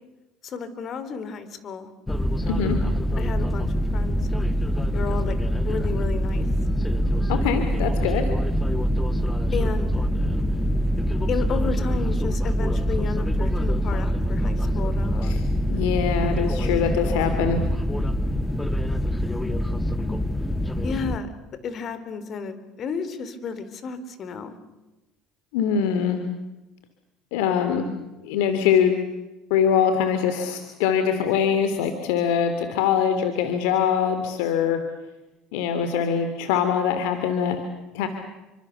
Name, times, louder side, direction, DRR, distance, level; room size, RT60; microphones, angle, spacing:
voice 1, 0.4-1.9 3.2-4.2 4.9-5.4 5.6-6.5 9.5-10.1 11.3-15.4 16.5-16.7 20.8-21.3 21.6-24.6, left 5 dB, 45° left, 12 dB, 4.0 m, -32 dB
sound 1, 2.1-21.2, equal, 10° left, 2.0 m, -24 dB
voice 2, 7.3-8.3 15.2-15.4 15.7-17.6 25.5-26.2 27.3-27.9 28.2-28.9 29.5-34.8 35.5-37.6 37.9-38.1, left 7 dB, 80° left, 8 dB, 2.8 m, -23 dB
30.0 x 25.5 x 6.9 m, 1.0 s
supercardioid pair, 85°, 0 cm